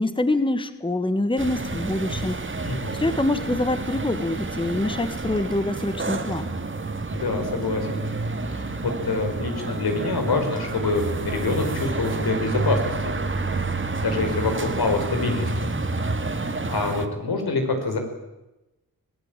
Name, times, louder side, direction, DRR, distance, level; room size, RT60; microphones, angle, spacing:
voice 1, 0.0-2.4 3.0-6.5, left 2 dB, 15° left, 11 dB, 1.4 m, -25 dB
sound 1, 1.4-17.1, right 3 dB, 35° right, 2.0 m, -29 dB
voice 2, 2.6-2.9 7.1-8.0 8.5-13.2 14.0-15.7 16.7-18.0, left 3 dB, 85° left, 4 dB, 5.2 m, -26 dB
25.5 x 18.0 x 9.0 m, 0.99 s
wide cardioid pair, 115°, 36 cm